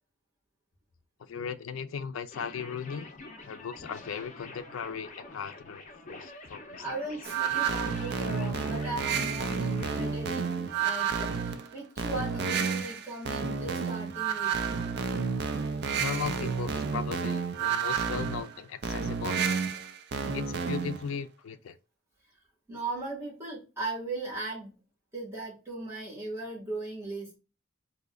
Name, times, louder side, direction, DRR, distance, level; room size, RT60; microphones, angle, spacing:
voice 1, 1.2-3.1 3.5-6.8 16.0-19.4 20.3-21.8, left 6 dB, 80° left, 0.4 m, -37 dB
sound 1, 2.3-10.1, left 3 dB, 40° left, 0.6 m, -46 dB
voice 2, 6.8-14.5 22.7-24.7 25.1-27.4, right 2 dB, 15° right, 1.7 m, -38 dB
sound 2, 7.2-21.0, right 6 dB, 55° right, 0.4 m, -30 dB
3.8 x 2.8 x 2.4 m
head